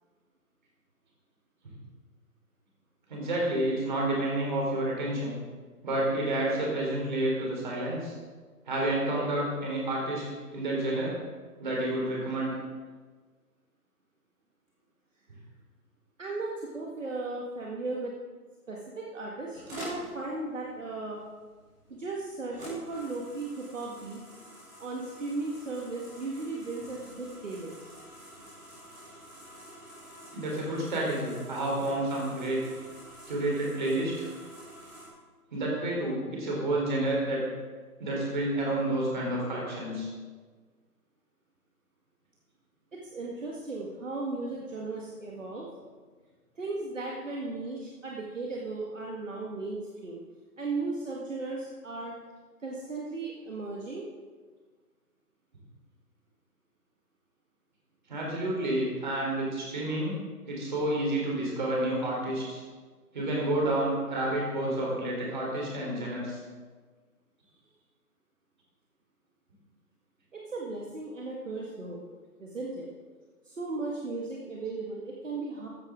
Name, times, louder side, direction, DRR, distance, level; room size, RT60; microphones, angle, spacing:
voice 1, 3.1-5.4 5.8-8.1 8.7-10.2 10.5-11.1 11.6-12.5 30.3-32.6 33.3-34.3 35.5-37.4 38.0-40.1 58.1-60.2 60.5-62.6 63.1-66.4, right 1 dB, 30° right, -3 dB, 3.9 m, -29 dB
voice 2, 16.2-18.1 18.7-21.2 21.9-24.2 24.8-27.8 42.9-45.7 46.6-50.2 50.6-52.1 52.6-54.1 70.3-72.0 72.4-72.9 73.4-75.7, right 3 dB, 50° right, -2 dB, 1.9 m, -36 dB
sound 1, 19.5-35.1, equal, 10° right, 3.5 m, -48 dB
14.5 x 12.5 x 3.8 m, 1.5 s
figure-of-eight pair, 170°, 47 cm